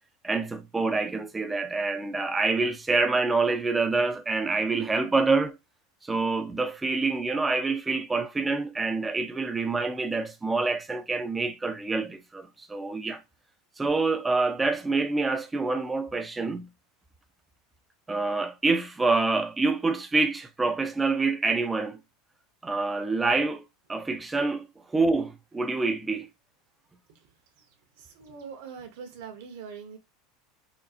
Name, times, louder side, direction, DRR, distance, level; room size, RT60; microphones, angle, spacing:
voice 1, 0.2-5.6 6.0-13.2 13.8-16.7 18.1-22.0 22.6-23.6 23.9-26.3, right 3 dB, 10° right, 0.5 m, -26 dB
voice 2, 28.0-30.0, right 6 dB, 75° right, 1.0 m, -42 dB
4.3 x 2.8 x 2.4 m
supercardioid pair, 140°, 0 cm